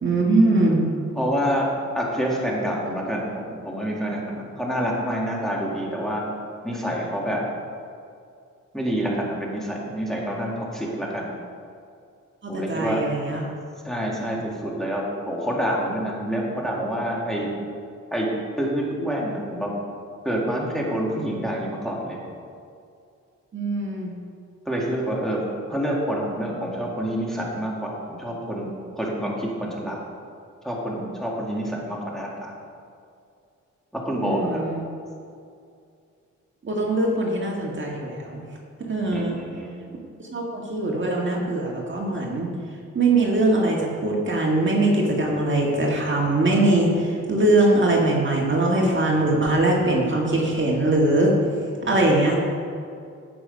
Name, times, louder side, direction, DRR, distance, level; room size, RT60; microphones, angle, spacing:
voice 1, 0.0-0.9 12.4-13.5 23.5-24.1 34.2-34.8 36.6-38.4 38.8-39.4 40.3-42.5 42.9-51.3 51.9-52.4, right 2 dB, 40° right, -2 dB, 1.9 m, -21 dB
voice 2, 1.2-1.7 1.9-6.2 6.6-7.4 8.7-11.3 12.5-13.0 13.8-17.5 18.1-18.3 18.6-19.7 20.2-22.2 24.7-30.0 30.6-32.5 34.0-34.6 39.1-39.7, equal, ahead, -4 dB, 2.2 m, -27 dB
15.5 x 6.1 x 5.3 m, 2.4 s
wide cardioid pair, 115°, 30 cm